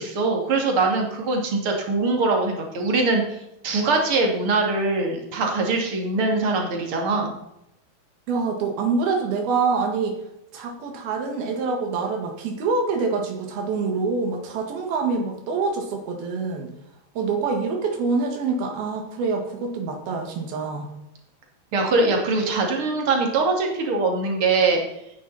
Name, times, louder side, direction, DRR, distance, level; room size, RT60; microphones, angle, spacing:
voice 1, 0.0-3.4 3.6-7.3 21.7-24.8, right 3 dB, 40° right, 1 dB, 2.8 m, -22 dB
voice 2, 8.3-10.2 10.5-16.7 17.2-20.9, right 4 dB, 85° right, 3 dB, 3.7 m, -25 dB
14.5 x 9.9 x 4.1 m, 0.82 s
omnidirectional pair, 4.2 m